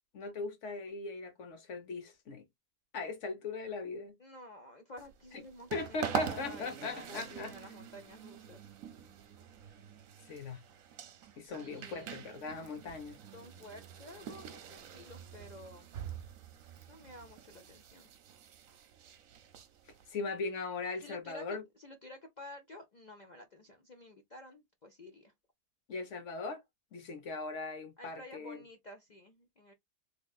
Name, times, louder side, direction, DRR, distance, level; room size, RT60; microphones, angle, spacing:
voice 1, 0.1-2.4 2.9-4.2 5.7-7.5 10.3-10.6 11.4-13.2 20.1-21.6 25.9-26.6 26.9-28.6, left 4 dB, 55° left, 1.2 m, -39 dB
voice 2, 4.2-8.7 11.4-12.3 13.3-15.9 16.9-18.1 21.0-25.3 28.0-29.7, left 1 dB, 70° left, 0.4 m, -51 dB
sound 1, 5.0-20.1, right 8 dB, 65° right, 1.1 m, -45 dB
3.5 x 3.2 x 2.3 m
omnidirectional pair, 1.7 m